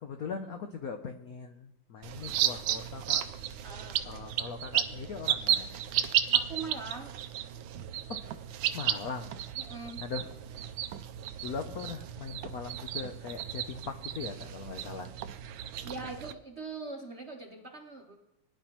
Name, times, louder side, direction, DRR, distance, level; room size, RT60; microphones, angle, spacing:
voice 1, 0.0-3.3 4.0-5.8 8.1-8.2 8.7-9.5 10.0-10.3 11.4-15.1, left 5 dB, 70° left, 6 dB, 0.8 m, -40 dB
sound 1, 2.0-16.3, right 10 dB, 75° right, 1.3 m, -33 dB
voice 2, 3.6-4.0 6.3-7.1 9.6-10.0 15.8-18.2, right 3 dB, 45° right, 2 dB, 0.9 m, -41 dB
20.0 x 10.5 x 3.0 m, 0.88 s
omnidirectional pair, 2.4 m